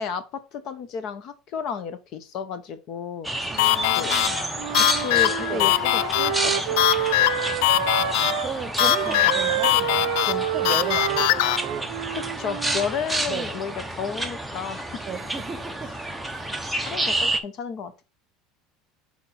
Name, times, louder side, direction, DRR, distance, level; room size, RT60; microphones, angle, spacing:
voice 1, 0.0-4.2 4.7-6.9 9.1-9.2 12.1-15.0 16.8-17.9, left 6 dB, 50° left, 0.9 m, -33 dB
sound 1, 3.2-17.4, right 1 dB, ahead, 0.7 m, -30 dB
voice 2, 3.5-4.6 5.5-5.7 7.4-11.9 13.3-13.5 15.1-15.9 16.3-16.6, right 7 dB, 30° right, 1.0 m, -35 dB
sound 2, 3.6-11.6, left 15 dB, 80° left, 0.3 m, -22 dB
Wind instrument woodwind instrument, 4.5-12.9, right 14 dB, 85° right, 0.5 m, -29 dB
6.0 x 4.3 x 4.2 m
cardioid pair, 145°, 0 cm